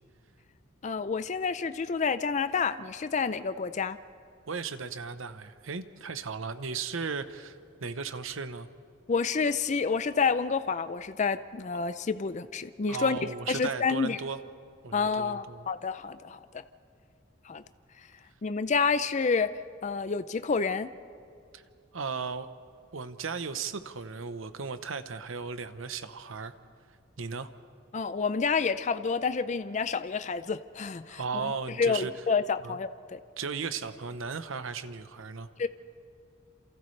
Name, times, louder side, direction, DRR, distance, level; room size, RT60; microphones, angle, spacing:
voice 1, 0.8-4.0 9.1-13.2 13.5-14.2 14.9-16.6 17.4-17.6 18.4-20.9 27.9-31.2 31.8-33.2 35.6-35.7, left 5 dB, 35° left, 13 dB, 0.4 m, -29 dB
voice 2, 4.5-8.7 12.9-14.4 14.8-15.7 21.5-21.6 21.9-22.5 22.9-26.5 27.2-27.5 31.1-32.1 32.6-32.8 33.4-35.5, right 5 dB, 80° right, 11 dB, 0.9 m, -36 dB
29.0 x 28.0 x 3.3 m, 2.5 s
head